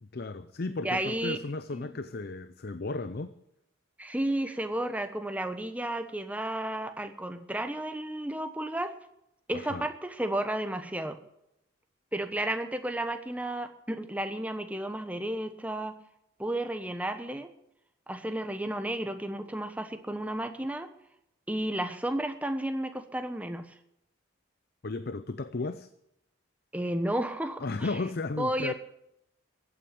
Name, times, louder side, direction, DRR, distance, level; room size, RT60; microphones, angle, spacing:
voice 1, 0.0-3.3 9.5-9.9 24.8-25.9 27.6-28.7, left 3 dB, 50° left, 0.6 m, -34 dB
voice 2, 0.8-1.4 1.7-1.9 4.0-8.9 9.5-11.2 12.1-15.9 16.4-17.5 18.1-20.9 21.5-23.6 26.7-27.7 28.4-28.7, right 1 dB, 5° right, 1.0 m, -32 dB
14.5 x 8.9 x 8.5 m
head